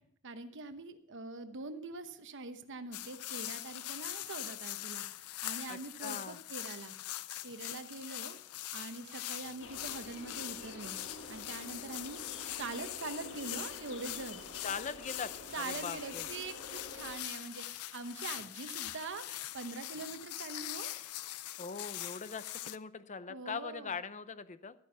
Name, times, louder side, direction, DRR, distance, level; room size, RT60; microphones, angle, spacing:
voice 1, 0.2-6.9 7.4-8.4 8.7-11.0 11.3-14.4 15.5-20.9 23.3-24.0, right 3 dB, 55° right, 9 dB, 1.0 m, -44 dB
sound 1, 2.9-22.8, left 14 dB, 75° left, 0.5 m, -42 dB
Microwave oven, 4.4-19.7, left 1 dB, 5° right, 2.8 m, -66 dB
voice 2, 5.7-6.4 14.6-16.3 21.6-24.7, left 5 dB, 35° left, 14 dB, 0.6 m, -41 dB
sound 2, 9.6-17.2, left 3 dB, 60° left, 1.5 m, -48 dB
13.0 x 9.6 x 5.7 m, 0.70 s
head